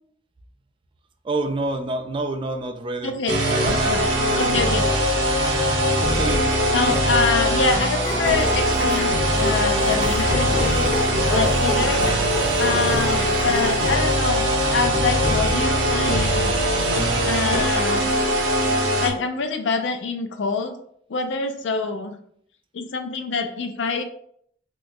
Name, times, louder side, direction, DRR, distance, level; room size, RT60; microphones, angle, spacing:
voice 1, 1.2-3.2 3.5-5.0 6.0-7.3, right 2 dB, 25° right, 6 dB, 0.3 m, -29 dB
voice 2, 3.0-3.3 3.9-4.0 4.4-4.9 6.7-9.1 9.4-10.9 11.2-12.0 12.6-16.5 17.2-18.1 19.0-20.8 21.1-22.1 22.7-24.0, left 4 dB, 70° left, 7 dB, 0.4 m, -25 dB
sound 1, 3.3-19.1, equal, 90° right, 0.8 m, -21 dB
sound 2, 8.0-14.0, left 1 dB, 15° left, 1.0 m, -30 dB
3.0 x 2.2 x 3.6 m, 0.65 s
head